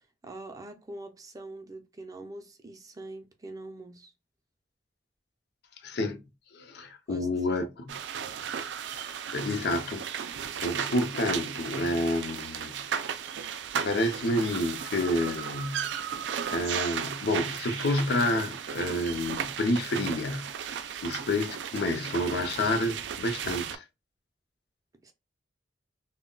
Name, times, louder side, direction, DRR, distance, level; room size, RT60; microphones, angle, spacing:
voice 1, 0.2-4.1 7.1-7.6 25.0-25.1, right 2 dB, 20° right, 0.4 m, -44 dB
voice 2, 5.8-6.2 6.5-7.9 8.9-10.4 10.6-12.8 13.8-15.9 16.5-23.8, left 1 dB, 65° left, 0.5 m, -29 dB
sound 1, 7.9-23.8, right 8 dB, 80° right, 0.4 m, -35 dB
2.2 x 2.0 x 3.7 m
head